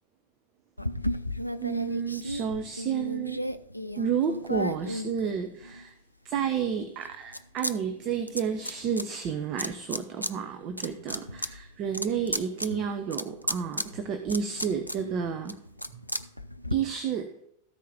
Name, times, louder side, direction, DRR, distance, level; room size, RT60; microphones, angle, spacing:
sound 1, 0.8-5.8 6.4-7.7 8.0-9.0 9.6-10.3 10.7-16.8, equal, 90° left, 0.4 m, -34 dB
voice 1, 1.6-3.4 4.0-5.9 6.2-15.6 16.7-17.3, right 7 dB, 35° right, 0.7 m, -31 dB
13.0 x 4.7 x 5.1 m
figure-of-eight pair, 90°, 0 cm